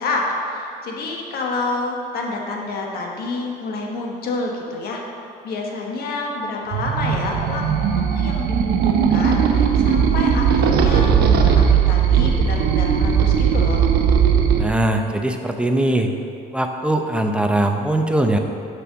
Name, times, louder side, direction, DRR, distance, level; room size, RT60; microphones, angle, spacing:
voice 1, 0.0-5.0 5.4-7.6 7.9-13.9, left 3 dB, 65° left, 0 dB, 1.4 m, -28 dB
sound 1, 6.7-14.6, right 7 dB, 70° right, 0.8 m, -17 dB
voice 2, 14.6-16.1 16.5-18.4, right 1 dB, 5° right, 4 dB, 0.7 m, -20 dB
6.6 x 6.1 x 6.1 m, 2.6 s
cardioid pair, 110°, 17 cm